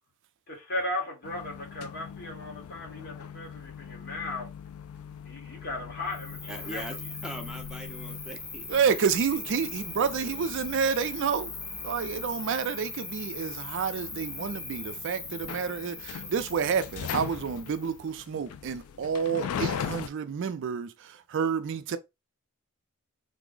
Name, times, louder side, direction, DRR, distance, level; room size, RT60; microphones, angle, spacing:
voice 1, 0.5-4.5 5.2-6.9, left 1 dB, 45° left, 1.3 m, -36 dB
sound 1, 1.2-20.1, left 8 dB, 80° left, 0.3 m, -41 dB
Cricket, 6.1-18.0, left 3 dB, 30° left, 1.0 m, -40 dB
voice 2, 6.5-7.0 7.2-8.7 10.0-10.4, equal, 5° right, 0.5 m, -41 dB
voice 3, 8.7-11.5 11.8-22.0, right 6 dB, 60° right, 0.4 m, -29 dB
3.3 x 2.0 x 3.7 m
head